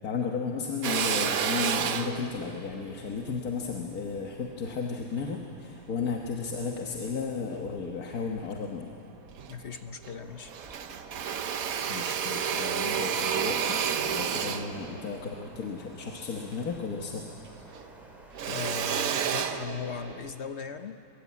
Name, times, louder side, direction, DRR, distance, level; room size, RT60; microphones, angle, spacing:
voice 1, 0.0-8.9 11.9-17.2 18.5-18.6, left 5 dB, 90° left, 0 dB, 1.8 m, -34 dB
Drill, 0.8-5.4 5.9-7.1 7.6-8.5 8.9-9.0 9.2-10.2 10.5-17.2 17.4-20.3, right 8 dB, 75° right, 1.3 m, -31 dB
voice 2, 9.5-10.5 17.7-17.8 18.5-21.0, left 6 dB, 55° left, 8 dB, 1.1 m, -38 dB
sound 1, 10.2-19.2, equal, ahead, 2.9 m, -54 dB
22.5 x 22.5 x 8.4 m, 2.8 s
omnidirectional pair, 1.5 m